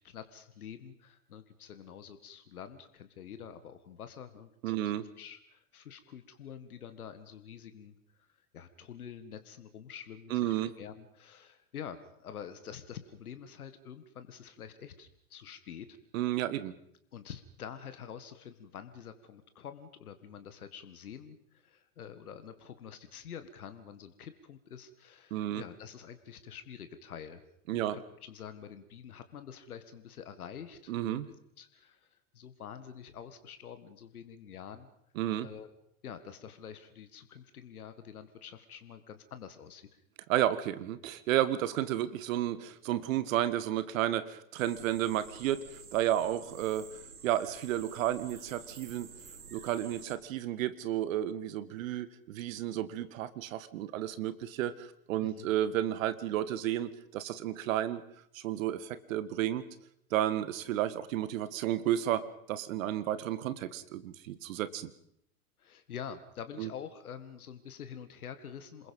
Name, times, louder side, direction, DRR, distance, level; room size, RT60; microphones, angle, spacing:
voice 1, 0.0-16.0 17.1-27.4 27.7-31.2 31.6-34.9 35.4-35.7 36.0-39.9 55.2-55.5 65.6-68.9, left 8 dB, 80° left, 11 dB, 1.9 m, -47 dB
voice 2, 4.6-5.1 10.3-10.7 16.1-16.7 25.3-25.6 27.7-28.0 30.9-31.3 35.2-35.5 40.3-46.9 47.2-49.1 49.5-58.0 58.3-59.7 60.1-64.9 66.6-66.7, right 12 dB, 65° right, 15 dB, 1.8 m, -32 dB
sound 1, 44.6-50.2, right 5 dB, 85° right, 2.4 m, -51 dB
28.0 x 21.0 x 5.4 m, 0.72 s
hypercardioid pair, 90°, 44 cm